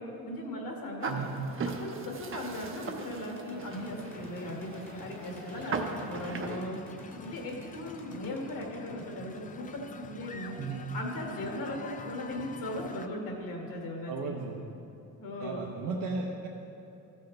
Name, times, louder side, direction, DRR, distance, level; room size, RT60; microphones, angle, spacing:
voice 1, 0.0-1.3 1.7-6.8 7.2-10.5 10.9-14.4 15.2-15.7, left 1 dB, 65° left, 0 dB, 1.9 m, -38 dB
sound 1, 1.0-6.6, right 4 dB, 35° right, 0.8 m, -38 dB
sound 2, 2.7-10.5, left 1 dB, 5° left, 1.0 m, -50 dB
sound 3, 3.7-13.1, left 5 dB, 25° left, 0.4 m, -47 dB
voice 2, 14.1-14.6 15.4-16.5, right 4 dB, 65° right, -2 dB, 0.9 m, -35 dB
14.0 x 6.4 x 3.3 m, 2.8 s
cardioid pair, 105°, 36 cm